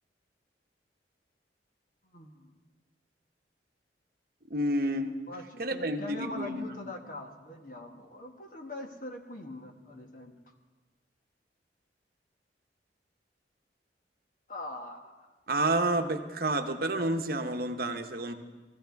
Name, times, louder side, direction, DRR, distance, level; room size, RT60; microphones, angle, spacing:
voice 1, 2.1-2.5 5.3-10.4 14.5-15.3, left 1 dB, 45° left, 3 dB, 1.3 m, -42 dB
voice 2, 4.5-5.2 5.6-6.7 15.5-18.3, right 1 dB, 55° right, 6 dB, 1.0 m, -29 dB
17.5 x 14.5 x 4.6 m, 1.2 s
head